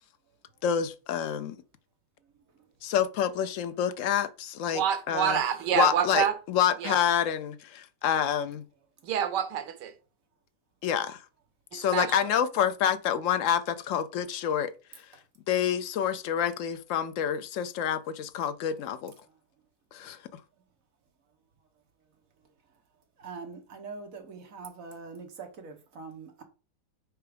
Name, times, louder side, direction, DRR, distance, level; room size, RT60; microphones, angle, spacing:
voice 1, 0.6-1.6 2.8-5.4 5.7-8.6 10.8-11.2 11.7-14.7 15.5-19.1 19.9-20.2, left 9 dB, 65° left, 0.8 m, -28 dB
voice 2, 4.7-6.4 6.8-7.0 9.0-9.9 11.7-12.3, right 9 dB, 85° right, 1.4 m, -27 dB
voice 3, 23.2-26.4, right 4 dB, 55° right, 1.5 m, -43 dB
4.6 x 4.6 x 5.0 m
omnidirectional pair, 1.8 m